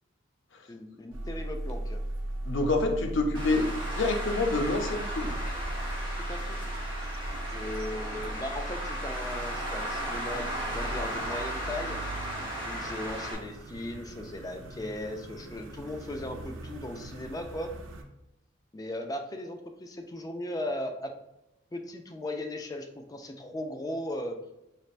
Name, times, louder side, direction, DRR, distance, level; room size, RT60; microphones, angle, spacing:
voice 1, 0.7-2.0 6.2-6.6 7.5-12.0 12.6-17.7 18.7-21.1 21.7-24.4, left 1 dB, 20° left, 5 dB, 0.3 m, -37 dB
sound 1, 1.1-18.0, right 1 dB, 85° right, 0.5 m, -38 dB
voice 2, 2.4-5.3, left 2 dB, 70° left, 4 dB, 0.6 m, -27 dB
Traffic noise roadway noise, 3.3-13.3, equal, 25° right, 1.1 m, -36 dB
4.1 x 3.2 x 2.4 m, 0.93 s
head